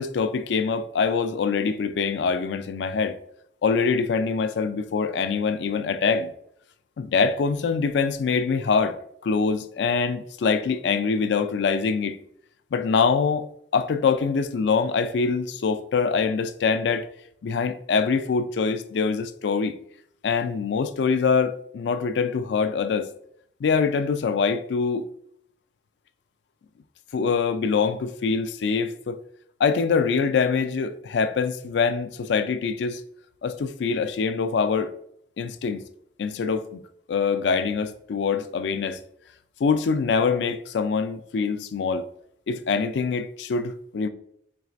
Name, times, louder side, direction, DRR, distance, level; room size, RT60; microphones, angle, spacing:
voice 1, 0.0-3.2 3.6-6.3 7.0-9.0 9.2-12.2 12.7-17.1 17.4-19.7 20.2-23.1 23.6-25.0 27.1-29.2 29.6-33.0 33.4-34.9 35.4-35.8 36.2-36.8 37.1-39.0 39.6-42.1 42.5-44.1, left 5 dB, 80° left, 0.4 m, -24 dB
4.6 x 3.1 x 2.5 m
head